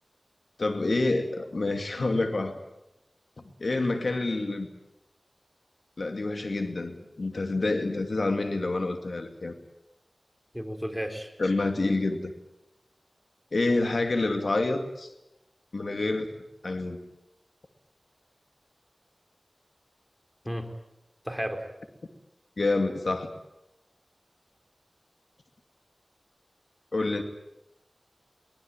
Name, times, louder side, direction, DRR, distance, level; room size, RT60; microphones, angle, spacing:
voice 1, 0.6-2.6 3.4-4.7 6.0-9.5 11.4-12.3 13.5-15.1 15.7-16.3 16.6-17.0 22.6-23.3 26.9-27.2, left 2 dB, 80° left, 6 dB, 2.4 m, -27 dB
voice 2, 10.5-11.3 20.5-20.7 21.2-21.6, equal, ahead, 4 dB, 4.1 m, -33 dB
23.5 x 19.5 x 9.0 m, 0.89 s
wide cardioid pair, 45°, 0 cm